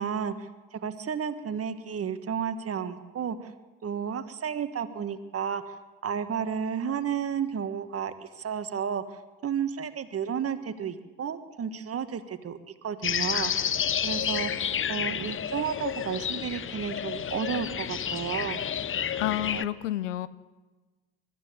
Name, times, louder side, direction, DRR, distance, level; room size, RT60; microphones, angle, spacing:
voice 1, 0.0-3.5 3.8-5.8 6.0-13.7 14.0-18.6 19.5-19.7, right 7 dB, 40° right, 11 dB, 1.6 m, -32 dB
sound 1, 13.0-19.6, left 8 dB, 35° left, 0.9 m, -30 dB
voice 2, 19.2-20.3, left 13 dB, 85° left, 17 dB, 0.7 m, -29 dB
22.0 x 12.5 x 9.7 m, 1.3 s
hypercardioid pair, 55°, 36 cm